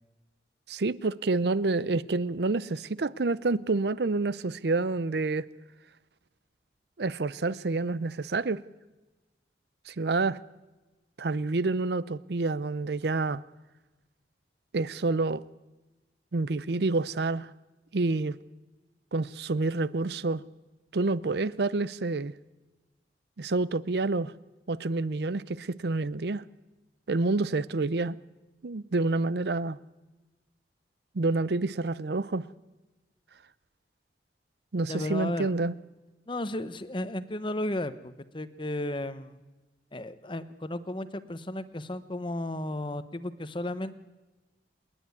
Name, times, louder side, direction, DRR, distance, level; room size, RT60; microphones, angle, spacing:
voice 1, 0.7-5.5 7.0-8.6 9.9-10.4 11.2-13.4 14.7-15.4 16.3-17.5 17.9-18.4 19.1-20.4 20.9-22.3 23.4-24.3 24.7-26.4 27.1-28.2 28.6-29.8 31.1-32.4 34.7-35.7, right 3 dB, 65° right, 0.6 m, -28 dB
voice 2, 34.9-35.5 36.3-39.4 39.9-44.0, left 1 dB, 30° left, 0.9 m, -34 dB
28.0 x 10.0 x 9.5 m
head